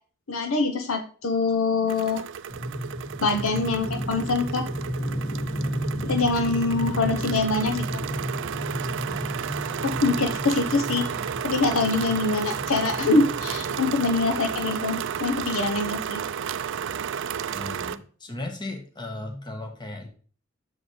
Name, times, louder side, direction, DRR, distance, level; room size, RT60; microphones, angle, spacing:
voice 1, 0.3-2.2 3.2-4.7 6.0-8.0 9.8-11.1 11.4-16.3, left 3 dB, 85° left, 7 dB, 0.9 m, -24 dB
sound 1, 1.9-18.0, right 8 dB, 65° right, 0.4 m, -33 dB
sound 2, 2.5-14.7, equal, 40° left, 2.5 m, -33 dB
voice 2, 9.0-9.4 17.5-20.1, left 2 dB, 20° left, 4 dB, 1.2 m, -36 dB
7.2 x 6.6 x 3.2 m, 0.41 s
head